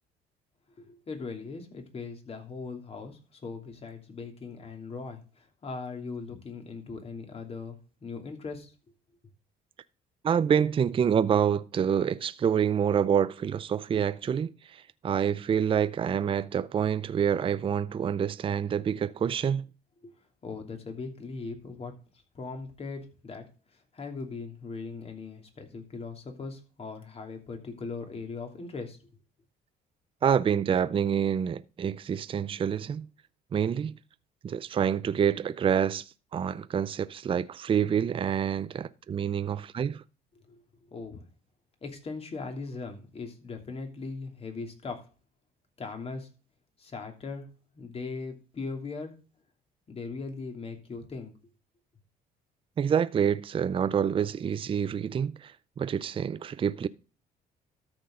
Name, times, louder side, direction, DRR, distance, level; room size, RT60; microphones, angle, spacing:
voice 1, 0.8-8.7 20.0-21.9 22.3-29.0 40.4-40.6 40.9-41.2 41.8-45.1 45.8-46.3 46.8-49.2 49.9-51.3, left 4 dB, 35° left, 2.9 m, -39 dB
voice 2, 10.2-19.7 30.2-33.1 33.5-33.9 34.4-40.0 52.8-56.9, right 8 dB, 30° right, 0.5 m, -27 dB
13.0 x 6.2 x 3.8 m
cardioid pair, 110°, 17 cm